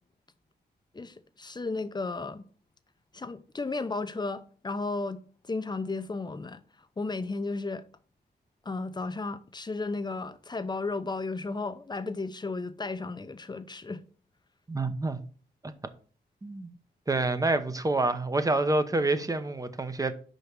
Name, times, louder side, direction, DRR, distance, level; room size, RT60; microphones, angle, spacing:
voice 1, 0.9-2.5 3.1-5.2 5.5-6.6 7.0-7.8 8.6-14.0, left 3 dB, 25° left, 0.7 m, -34 dB
voice 2, 14.7-15.2 16.4-16.7 17.1-20.1, right 2 dB, 20° right, 0.9 m, -27 dB
5.4 x 5.2 x 6.0 m
cardioid pair, 90°, 18 cm